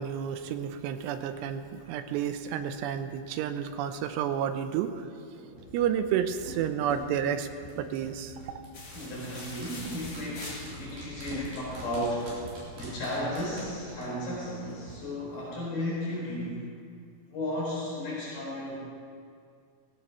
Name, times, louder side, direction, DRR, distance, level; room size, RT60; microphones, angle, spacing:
voice 1, 0.0-4.9 5.7-7.5 7.8-8.3, right 9 dB, 90° right, 9 dB, 2.9 m, -30 dB
sound 1, 5.5-14.9 15.2-15.3, right 1 dB, 65° right, 6.0 m, -44 dB
sound 2, 8.7-11.1, left 2 dB, 40° left, 3.0 m, -44 dB
voice 2, 8.9-16.6 17.3-18.8, left 1 dB, 65° left, -8 dB, 6.3 m, -34 dB
18.5 x 17.5 x 3.1 m, 2.2 s
omnidirectional pair, 4.8 m